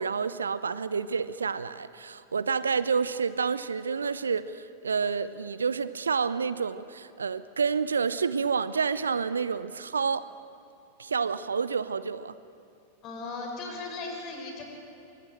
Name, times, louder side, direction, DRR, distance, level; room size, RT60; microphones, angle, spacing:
voice 1, 0.0-10.3 11.0-12.3, right 5 dB, 75° right, 16 dB, 0.6 m, -29 dB
voice 2, 13.0-14.6, left 3 dB, 35° left, 2 dB, 6.3 m, -37 dB
23.5 x 22.0 x 8.9 m, 2.6 s
figure-of-eight pair, 90°, 0 cm